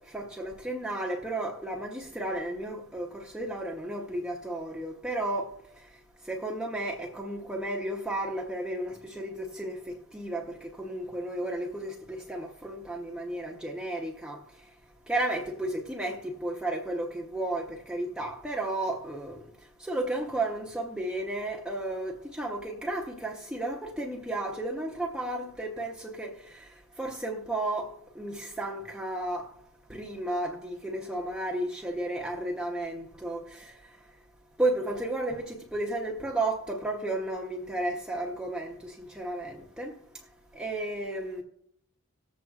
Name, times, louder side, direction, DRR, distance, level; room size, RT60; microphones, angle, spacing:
voice 1, 0.1-5.5 6.3-14.4 15.1-19.4 19.8-26.7 27.0-29.5 29.9-33.7 34.6-39.9 40.5-41.4, right 1 dB, 5° right, 0.7 m, -33 dB
19.0 x 7.7 x 2.4 m
head